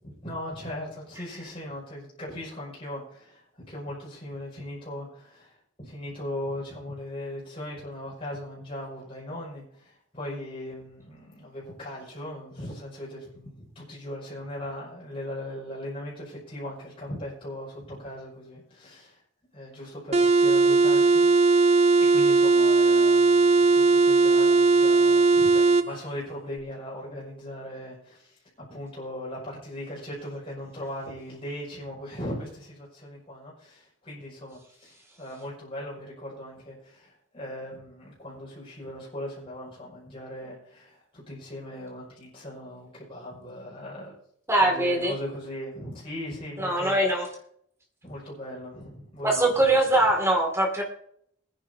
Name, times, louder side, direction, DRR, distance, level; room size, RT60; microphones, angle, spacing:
voice 1, 0.0-19.2 19.5-28.4 28.7-44.1 44.6-47.0 48.0-49.6, left 1 dB, 30° left, -7 dB, 6.0 m, -39 dB
sound 1, 20.1-25.9, right 3 dB, 35° right, 0.6 m, -19 dB
voice 2, 44.5-45.1 46.6-47.3 49.2-50.8, right 1 dB, 15° right, 0 dB, 2.4 m, -22 dB
22.5 x 10.0 x 2.8 m, 0.67 s
head